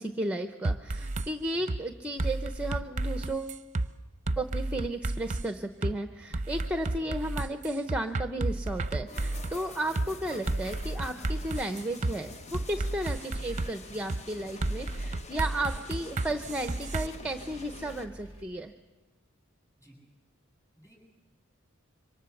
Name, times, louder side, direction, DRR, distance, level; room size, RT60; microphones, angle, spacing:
voice 1, 0.0-3.6 4.4-18.7, right 1 dB, 5° right, 7 dB, 0.8 m, -34 dB
sound 1, 0.6-1.3 1.7-1.8 2.2-3.9 4.3-5.4 5.8-5.9 6.3-9.6 10.0-10.1 10.5-12.1 12.5-13.7 14.1-14.2 14.6-17.1, right 2 dB, 35° right, 0.7 m, -32 dB
voice 2, 6.9-7.3 13.1-13.4 19.8-20.0 20.7-21.0, equal, 15° left, 1 dB, 7.7 m, -55 dB
sound 2, 9.1-18.1, left 3 dB, 30° left, 0.9 m, -47 dB
sound 3, 11.8-18.4, equal, 70° left, 5.5 m, -53 dB
26.5 x 24.5 x 7.2 m, 1.2 s
head